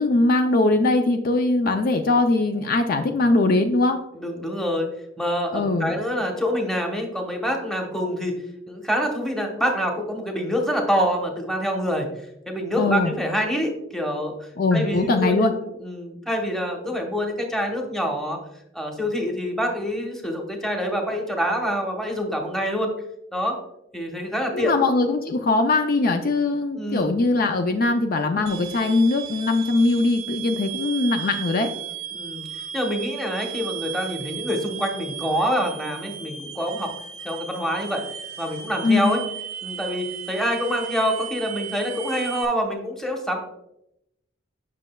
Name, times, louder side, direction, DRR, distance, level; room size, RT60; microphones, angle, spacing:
voice 1, 0.0-4.0 5.5-6.0 12.8-13.1 14.6-15.5 24.5-31.7 38.8-39.2, left 2 dB, 45° left, 5 dB, 0.4 m, -21 dB
voice 2, 4.1-4.9 5.2-12.1 12.5-15.5 15.8-18.4 18.7-22.9 23.3-23.6 23.9-24.7 26.7-27.2 32.1-32.4 32.7-37.0 37.2-38.0 38.4-39.2 39.6-43.4, equal, ahead, 1 dB, 0.9 m, -26 dB
sound 1, 28.5-42.5, right 9 dB, 85° right, 0.6 m, -35 dB
7.6 x 6.0 x 2.2 m, 0.83 s
head